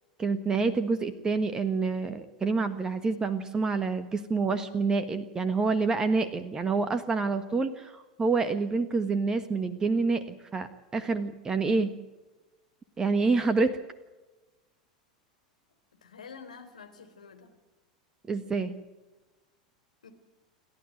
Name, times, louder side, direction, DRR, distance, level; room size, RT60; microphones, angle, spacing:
voice 1, 0.2-11.9 13.0-13.7 18.3-18.8, right 4 dB, 20° right, 9 dB, 1.5 m, -27 dB
voice 2, 16.0-17.5 20.0-20.1, left 5 dB, 75° left, 5 dB, 3.7 m, -48 dB
29.5 x 12.5 x 9.3 m, 1.1 s
figure-of-eight pair, 85°, 4 cm